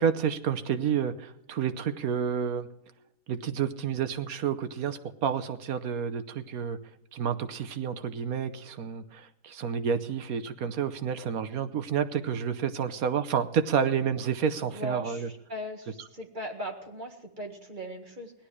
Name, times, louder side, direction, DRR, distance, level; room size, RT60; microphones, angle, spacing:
voice 1, 0.0-2.7 3.3-6.8 7.1-15.3, right 7 dB, 65° right, 10 dB, 1.3 m, -29 dB
voice 2, 14.6-18.3, equal, 30° right, 3 dB, 1.9 m, -38 dB
17.5 x 11.5 x 4.8 m, 0.84 s
omnidirectional pair, 1.7 m